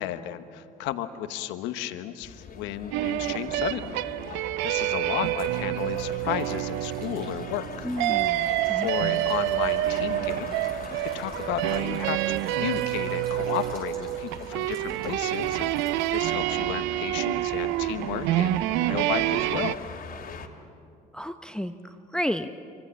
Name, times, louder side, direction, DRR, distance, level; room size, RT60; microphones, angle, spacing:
voice 1, 0.0-4.0 4.3-7.9 8.6-19.8, left 12 dB, 75° left, 10 dB, 1.1 m, -34 dB
sound 1, 2.2-20.5, left 5 dB, 50° left, 2.5 m, -43 dB
sound 2, 2.9-19.7, right 15 dB, 75° right, 0.5 m, -28 dB
sound 3, 5.7-16.3, right 2 dB, 55° right, 7.4 m, -49 dB
voice 2, 7.8-8.9 21.1-22.6, equal, 5° left, 9 dB, 1.0 m, -32 dB
26.5 x 24.5 x 7.3 m, 2.6 s
hypercardioid pair, 60°, 19 cm